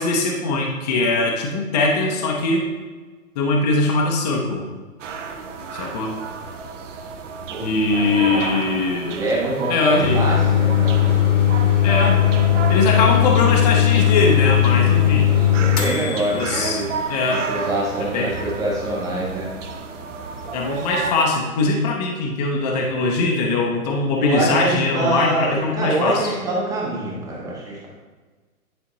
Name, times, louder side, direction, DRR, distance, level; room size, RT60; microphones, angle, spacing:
voice 1, 0.0-2.6 3.4-4.6 5.7-6.1 7.6-9.2 9.7-10.2 11.8-12.2 12.7-15.3 16.3-16.8 17.1-17.4 18.0-18.3 20.5-26.3, left 3 dB, 30° left, 0 dB, 0.6 m, -21 dB
sound 1, 5.0-21.1, right 5 dB, 55° right, 0.9 m, -32 dB
voice 2, 7.5-8.7 9.1-11.3 15.5-16.9 17.3-19.5 24.2-27.9, right 1 dB, 10° right, -4 dB, 0.8 m, -25 dB
sound 2, 10.0-16.6, left 10 dB, 75° left, 1.5 m, -18 dB
9.9 x 4.2 x 3.0 m, 1.4 s
hypercardioid pair, 145°, 44 cm